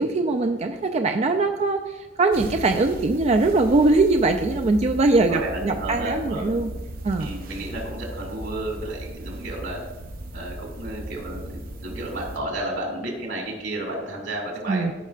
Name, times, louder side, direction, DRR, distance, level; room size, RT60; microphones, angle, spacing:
voice 1, 0.0-6.7 7.0-7.3 14.7-14.9, right 3 dB, 35° right, 5 dB, 0.3 m, -21 dB
sound 1, 2.3-12.4, right 1 dB, 50° right, 0.7 m, -37 dB
voice 2, 5.3-6.6 7.2-9.8 10.3-14.9, right 1 dB, 90° right, 0 dB, 2.5 m, -32 dB
14.5 x 5.4 x 2.5 m, 1.1 s
head